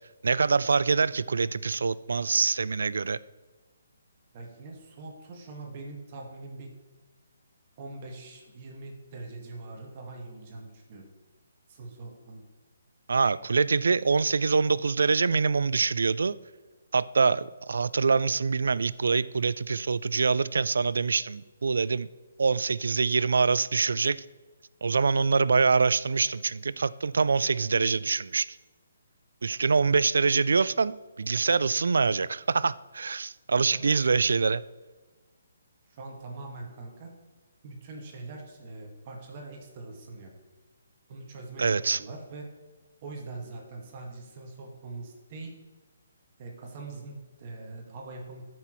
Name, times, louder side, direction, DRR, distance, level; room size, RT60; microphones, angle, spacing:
voice 1, 0.2-3.2 13.1-16.4 16.9-22.1 22.4-24.2 24.8-28.5 29.4-34.6 41.6-42.0, right 4 dB, 70° right, 19 dB, 0.3 m, -25 dB
voice 2, 4.3-6.7 7.8-11.0 11.7-12.4 33.6-34.0 35.9-37.1 37.6-40.3 41.1-42.4 43.0-45.5 46.4-48.4, right 3 dB, 40° right, 1 dB, 1.7 m, -42 dB
14.0 x 6.1 x 3.1 m, 1.3 s
figure-of-eight pair, 145°, 0 cm